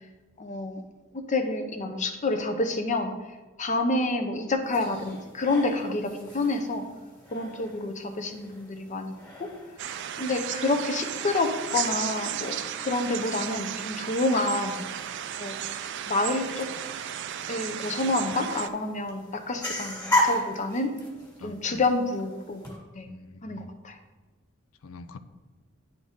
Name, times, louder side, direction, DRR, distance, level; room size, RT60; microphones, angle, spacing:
voice 1, 0.4-0.8 1.1-3.1 3.6-6.9 7.3-9.5 10.2-14.8 15.4-15.5 16.1-16.7 17.5-20.9 21.4-22.7 22.9-23.1 23.4-24.0, left 2 dB, 35° left, 6 dB, 0.6 m, -28 dB
sound 1, 4.6-22.8, left 1 dB, 20° left, 1.6 m, -37 dB
sound 2, 9.8-18.7, right 10 dB, 60° right, 0.3 m, -34 dB
voice 2, 21.4-21.8 23.1-23.7 24.8-25.2, left 3 dB, 85° left, 12 dB, 0.5 m, -45 dB
9.7 x 3.9 x 3.6 m, 1.2 s
head